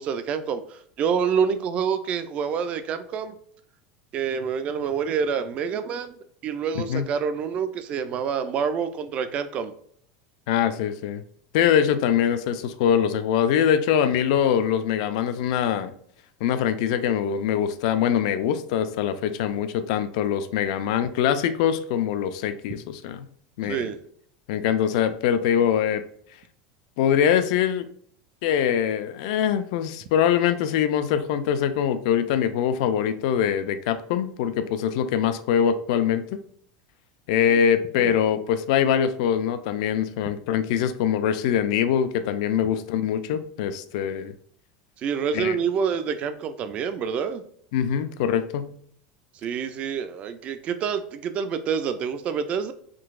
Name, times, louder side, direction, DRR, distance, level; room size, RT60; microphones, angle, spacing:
voice 1, 0.0-3.3 4.1-6.2 6.4-9.7 23.7-24.0 38.0-38.1 45.0-47.4 49.4-52.7, right 7 dB, 35° right, 11 dB, 0.3 m, -27 dB
voice 2, 6.8-7.1 10.5-11.2 11.5-15.9 16.4-23.3 23.6-23.9 24.5-26.0 27.0-27.9 28.4-36.4 37.3-44.3 45.3-45.6 47.7-48.7, left 9 dB, 65° left, 11 dB, 0.3 m, -23 dB
3.8 x 2.7 x 2.4 m, 0.62 s
supercardioid pair, 145°, 4 cm